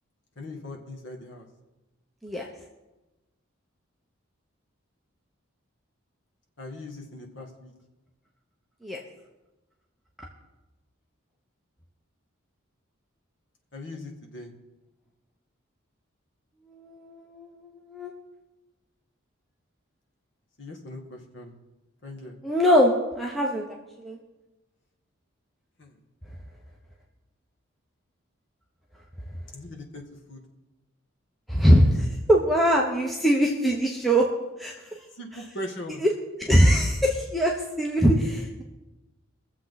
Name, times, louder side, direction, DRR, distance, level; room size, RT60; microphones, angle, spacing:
voice 1, 0.4-1.5 6.6-7.7 13.7-14.5 20.6-21.5 22.0-22.4 25.8-25.9 29.5-30.0 30.3-30.4 34.8-36.0, left 1 dB, 55° left, 1 dB, 1.8 m, -40 dB
voice 2, 16.7-18.1 22.4-24.2 31.5-34.3 34.6-34.7 36.0-36.1 36.4-38.6, equal, ahead, -2 dB, 0.9 m, -22 dB
22.0 x 7.3 x 4.1 m, 1.1 s
head